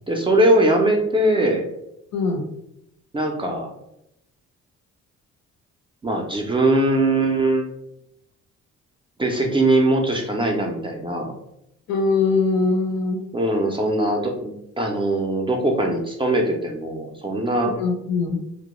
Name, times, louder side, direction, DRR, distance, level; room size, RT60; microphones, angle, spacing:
voice 1, 0.1-1.6 3.1-3.7 6.0-7.6 9.2-11.3 13.3-17.7, right 1 dB, 15° right, 1 dB, 0.4 m, -21 dB
voice 2, 2.1-2.4 11.9-13.3 17.8-18.4, left 4 dB, 65° left, 3 dB, 0.6 m, -22 dB
2.1 x 2.0 x 2.9 m, 0.81 s
cardioid pair, 90°, 30 cm